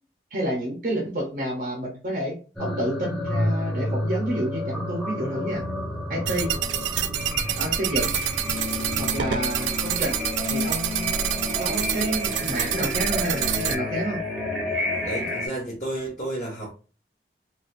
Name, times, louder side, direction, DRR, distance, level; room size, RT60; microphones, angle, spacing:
voice 1, 0.3-5.6 6.1-6.5 7.6-8.2 9.0-10.2 10.5-11.2 11.6-14.2, right 1 dB, 50° right, 0 dB, 0.8 m, -29 dB
sound 1, 2.6-15.5, left 1 dB, ahead, 0.9 m, -30 dB
sound 2, 6.3-13.8, right 9 dB, 90° right, 0.3 m, -27 dB
voice 2, 15.0-16.7, right 1 dB, 40° left, -5 dB, 1.2 m, -31 dB
4.1 x 2.4 x 2.5 m, 0.36 s
head